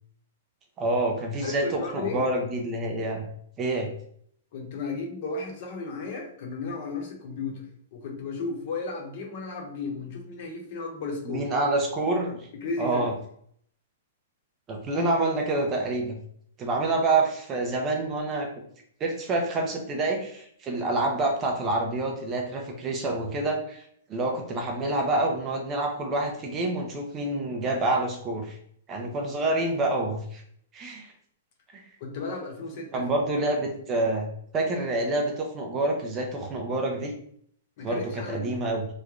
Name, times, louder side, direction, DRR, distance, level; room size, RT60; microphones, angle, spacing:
voice 1, 0.8-3.2 3.6-3.9 11.3-12.4 12.8-13.1 14.7-16.2 16.6-18.5 19.0-28.6 28.9-30.4 30.7-31.1 31.7-31.8 32.9-34.3 34.5-37.1 37.8-38.9, right 2 dB, 20° right, 2 dB, 0.5 m, -27 dB
voice 2, 1.4-2.2 4.5-11.5 12.5-13.1 32.0-33.1 37.8-38.6, left 3 dB, 40° left, 1 dB, 0.9 m, -34 dB
3.1 x 2.2 x 3.6 m, 0.64 s
hypercardioid pair, 170°, 0 cm